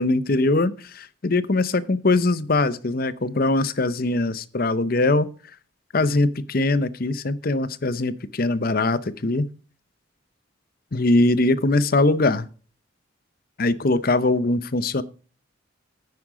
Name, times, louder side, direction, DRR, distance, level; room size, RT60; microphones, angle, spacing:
voice 1, 0.0-5.3 5.9-9.5 10.9-12.5 13.6-15.0, left 2 dB, 45° left, 16 dB, 0.7 m, -21 dB
9.7 x 9.5 x 5.0 m, 0.37 s
head